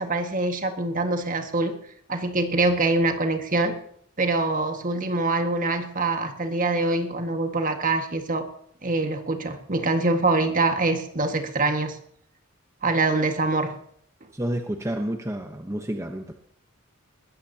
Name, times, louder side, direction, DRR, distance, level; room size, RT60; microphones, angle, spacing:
voice 1, 0.0-1.8 2.1-3.8 4.2-8.5 8.8-12.0 12.8-13.8, right 2 dB, 40° right, 6 dB, 1.8 m, -24 dB
voice 2, 14.3-16.3, right 1 dB, 15° right, 4 dB, 1.0 m, -30 dB
20.5 x 13.5 x 2.9 m, 0.65 s
head